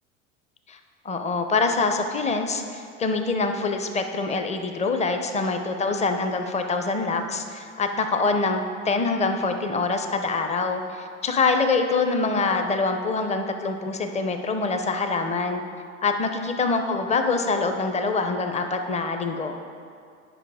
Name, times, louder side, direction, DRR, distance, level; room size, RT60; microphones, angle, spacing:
voice 1, 1.0-15.6 16.0-19.6, left 3 dB, 15° left, 6 dB, 0.7 m, -25 dB
8.9 x 5.5 x 4.8 m, 2.3 s
hypercardioid pair, 80°, 39 cm